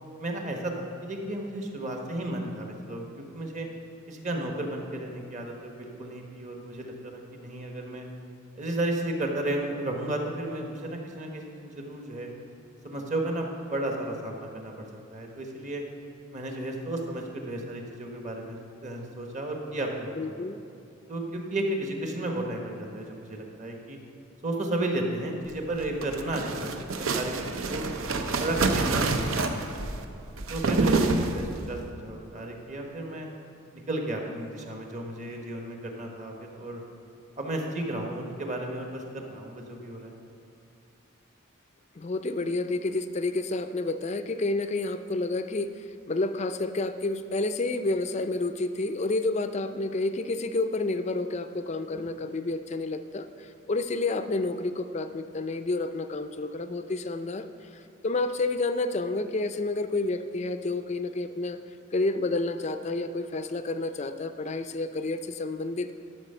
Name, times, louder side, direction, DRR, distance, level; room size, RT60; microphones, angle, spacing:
voice 1, 0.2-3.0 3.3-3.7 4.1-8.1 8.6-12.3 12.8-14.8 15.1-15.8 16.3-20.2 21.1-24.0 24.4-27.9 28.4-29.9 30.5-33.3 33.9-36.8 37.4-40.1, right 1 dB, 35° right, 2 dB, 1.2 m, -33 dB
voice 2, 20.2-20.6 42.0-61.6 61.9-65.9, left 2 dB, 35° left, 10 dB, 0.4 m, -30 dB
sound 1, 25.7-31.7, right 3 dB, 75° right, 0.7 m, -27 dB
12.5 x 6.6 x 5.5 m, 2.5 s
head